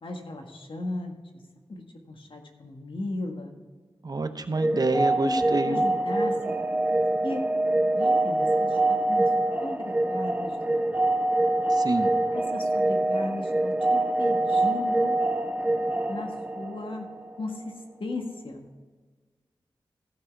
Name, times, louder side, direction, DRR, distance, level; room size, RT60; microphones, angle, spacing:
voice 1, 0.0-1.4 1.7-3.5 4.9-6.5 7.2-7.4 7.9-9.3 9.6-11.0 12.3-15.2 16.1-17.1 17.4-17.7 18.0-18.6, left 2 dB, 65° left, 3 dB, 1.7 m, -36 dB
voice 2, 4.0-5.8 11.7-12.1, right 2 dB, 45° right, 9 dB, 0.8 m, -27 dB
sound 1, 4.6-17.3, right 2 dB, 15° right, 0.5 m, -25 dB
14.5 x 6.2 x 4.6 m, 1.4 s
wide cardioid pair, 60°, 10 cm